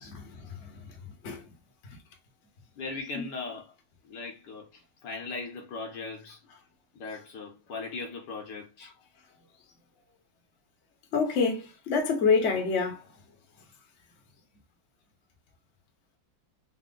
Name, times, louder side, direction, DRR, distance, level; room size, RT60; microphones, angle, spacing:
voice 1, 0.1-1.5 1.9-2.0 3.1-3.2 8.8-8.9 11.1-13.1, left 5 dB, 45° left, 1.0 m, -28 dB
voice 2, 2.8-3.7 4.0-6.4 6.9-8.9, left 3 dB, 65° left, 1.3 m, -39 dB
4.2 x 2.0 x 3.7 m
omnidirectional pair, 2.2 m